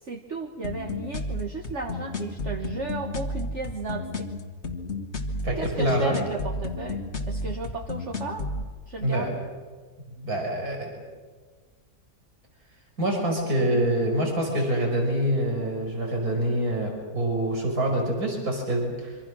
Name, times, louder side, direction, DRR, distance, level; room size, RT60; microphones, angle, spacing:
voice 1, 0.0-4.3 5.5-8.5 8.9-9.4 13.6-13.9, right 4 dB, 50° right, 2 dB, 1.7 m, -34 dB
sound 1, 0.6-8.6, left 2 dB, 45° left, 2.2 m, -32 dB
voice 2, 5.4-6.1 9.0-9.3 10.2-10.9 13.0-19.2, right 1 dB, 70° right, 1 dB, 5.8 m, -26 dB
26.5 x 25.0 x 6.3 m, 1.4 s
omnidirectional pair, 1.6 m